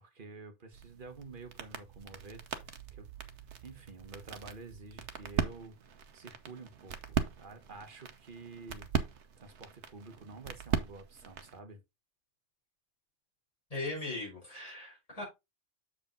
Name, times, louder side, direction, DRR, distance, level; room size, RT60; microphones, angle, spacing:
voice 1, 0.0-3.1 3.6-8.9 9.4-11.8, right 3 dB, 50° right, 1.3 m, -50 dB
sound 1, 0.7-11.6, right 7 dB, 75° right, 1.2 m, -39 dB
voice 2, 13.7-15.2, left 2 dB, 30° left, 4.5 m, -39 dB
7.3 x 4.9 x 3.8 m
omnidirectional pair, 1.2 m